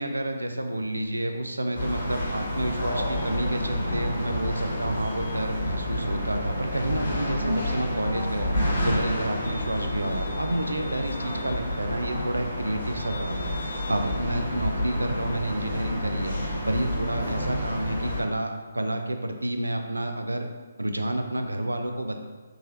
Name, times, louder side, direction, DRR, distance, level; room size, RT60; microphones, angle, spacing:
voice 1, 0.0-20.5 20.8-22.2, right 1 dB, 80° right, 5 dB, 0.4 m, -30 dB
sound 1, 1.7-18.2, left 1 dB, 60° left, 1.4 m, -29 dB
3.8 x 3.1 x 2.5 m, 1.3 s
figure-of-eight pair, 140°, 0 cm